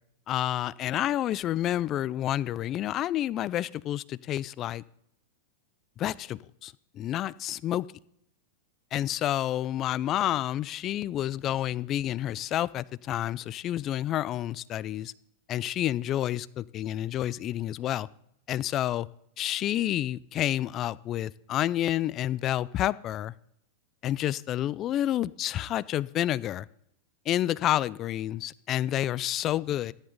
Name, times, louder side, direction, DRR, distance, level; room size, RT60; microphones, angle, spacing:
voice 1, 0.3-4.8 6.0-7.9 8.9-15.1 15.5-18.1 18.5-19.1 19.4-23.3 24.0-26.7 27.3-29.9, left 12 dB, 35° left, 0.4 m, -29 dB
14.0 x 10.5 x 4.0 m
hypercardioid pair, 115°, 0 cm